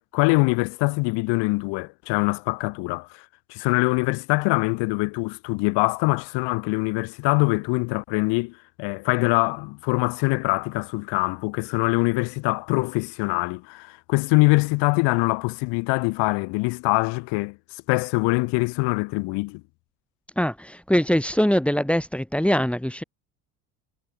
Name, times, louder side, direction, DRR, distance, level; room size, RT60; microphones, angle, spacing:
voice 1, 0.0-17.6 17.9-19.6, left 27 dB, 65° left, 4.1 m, -23 dB
voice 2, 20.4-23.0, equal, 5° left, 5.0 m, -22 dB
hypercardioid pair, 65°, 46 cm